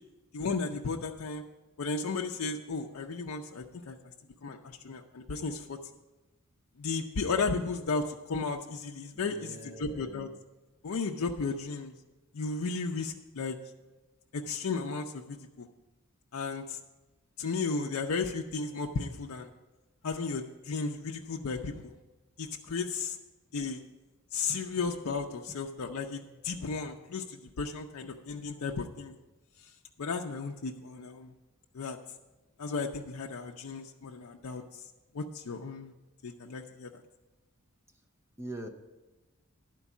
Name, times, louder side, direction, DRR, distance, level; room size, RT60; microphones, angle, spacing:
voice 1, 0.3-1.4 1.8-4.0 4.4-5.8 6.8-10.3 10.8-11.9 12.3-13.6 14.3-15.7 16.3-16.8 17.4-19.5 20.0-21.9 22.4-23.2 23.5-23.8 24.3-29.2 30.0-31.3 31.7-32.0 32.6-34.8 35.1-35.9 36.2-37.0, left 4 dB, 75° left, 1 dB, 0.5 m, -34 dB
voice 2, 9.1-10.4 22.6-22.7 24.5-24.7 25.5-25.6 28.0-28.1 38.4-38.7, right 1 dB, 10° right, 3 dB, 0.6 m, -44 dB
11.0 x 4.6 x 7.1 m, 1.1 s
head